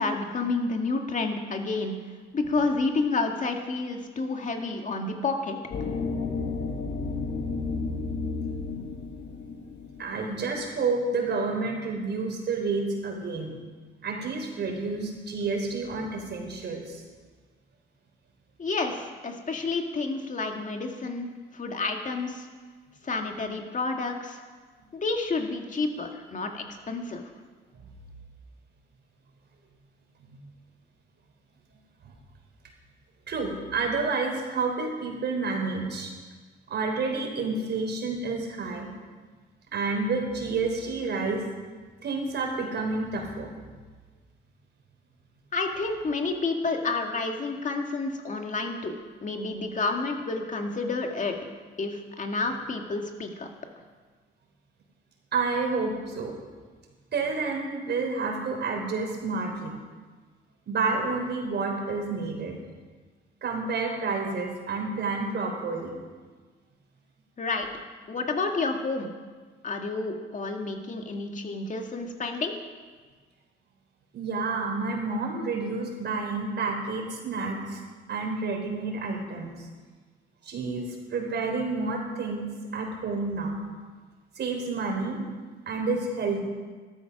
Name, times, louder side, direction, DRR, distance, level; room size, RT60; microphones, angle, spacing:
voice 1, 0.0-2.0 2.3-5.6 18.6-22.5 23.0-24.4 24.9-27.3 45.5-51.4 51.8-53.5 67.4-67.7 68.1-69.1 69.6-72.6, left 3 dB, 40° left, 3 dB, 2.1 m, -30 dB
sound 1, 5.7-10.8, left 4 dB, 65° left, 2.2 m, -32 dB
voice 2, 10.0-13.6 14.0-17.0 30.3-30.4 33.3-36.1 36.7-38.9 39.7-41.4 42.0-43.5 55.3-56.3 57.1-59.8 60.7-62.5 63.4-65.9 74.1-77.8 78.1-79.7 80.4-83.6 84.4-85.2 85.7-86.4, right 4 dB, 60° right, 1 dB, 4.0 m, -29 dB
14.0 x 13.0 x 6.0 m, 1.4 s
cardioid pair, 90°, 20 cm